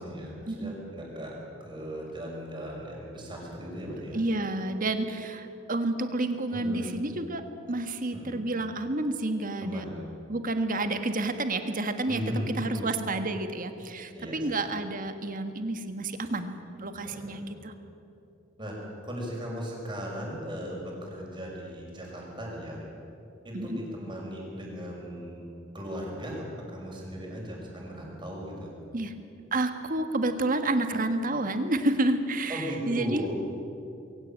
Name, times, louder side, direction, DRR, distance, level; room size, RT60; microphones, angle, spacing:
voice 1, 0.0-1.3 1.6-4.2 6.5-7.0 8.1-8.4 9.6-10.0 12.1-12.9 14.1-14.5 17.0-17.4 18.6-22.8 23.4-25.4 25.7-28.7 32.5-33.3, equal, 25° right, -2 dB, 6.2 m, -37 dB
voice 2, 4.1-9.8 10.3-12.2 12.6-17.7 23.5-23.8 28.9-29.1 29.5-33.2, right 2 dB, 45° right, 8 dB, 1.6 m, -30 dB
22.0 x 17.0 x 9.0 m, 2.6 s
head